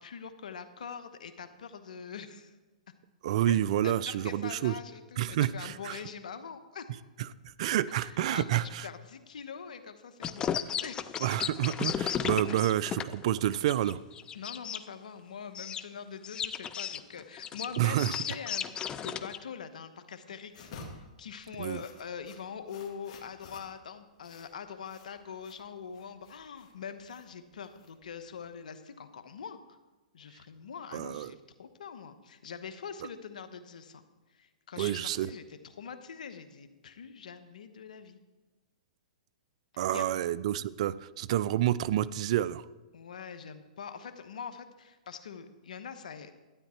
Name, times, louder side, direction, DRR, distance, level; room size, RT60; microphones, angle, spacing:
voice 1, 0.0-2.6 3.5-3.6 3.8-6.9 8.0-10.5 10.8-11.2 12.5-12.7 14.3-29.8 30.1-34.0 34.3-38.2 39.7-40.1 42.9-46.3, left 6 dB, 75° left, 9 dB, 1.1 m, -44 dB
voice 2, 3.2-4.7 5.2-6.0 7.6-8.8 11.2-14.0 17.8-18.1 21.6-21.8 30.9-31.3 34.8-35.3 39.8-42.6, right 12 dB, 55° right, 17 dB, 0.5 m, -29 dB
sound 1, 10.2-14.8 15.6-15.8 16.2-19.4, left 8 dB, 20° left, 0.4 m, -34 dB
sound 2, 20.5-28.4, left 3 dB, 55° left, 2.2 m, -52 dB
12.5 x 9.3 x 4.4 m, 1.2 s
hypercardioid pair, 135°, 4 cm